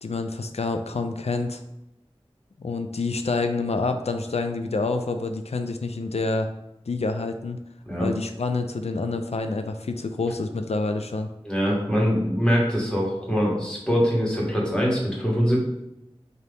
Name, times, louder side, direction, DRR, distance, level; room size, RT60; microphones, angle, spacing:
voice 1, 0.0-1.6 2.6-6.5 6.9-7.6 8.0-11.3, left 3 dB, 80° left, 7 dB, 0.4 m, -27 dB
voice 2, 11.4-15.6, equal, 10° left, -4 dB, 1.3 m, -23 dB
3.9 x 2.7 x 3.4 m, 0.87 s
wide cardioid pair, 45°, 11 cm